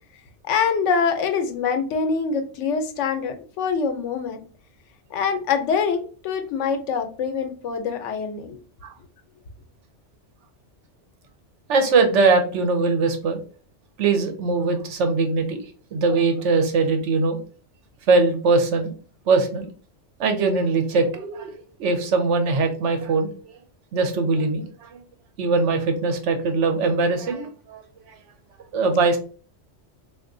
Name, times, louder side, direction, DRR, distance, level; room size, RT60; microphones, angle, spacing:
voice 1, 0.4-4.4 5.1-8.6, left 6 dB, 90° left, 7 dB, 1.0 m, -24 dB
voice 2, 11.7-13.4 14.0-15.6 15.9-17.4 18.1-18.9 19.3-19.7 20.2-21.5 21.8-23.3 23.9-24.9 25.4-27.8 28.7-29.2, right 3 dB, 85° right, 6 dB, 1.0 m, -21 dB
3.6 x 2.5 x 2.5 m, 0.40 s
omnidirectional pair, 1.2 m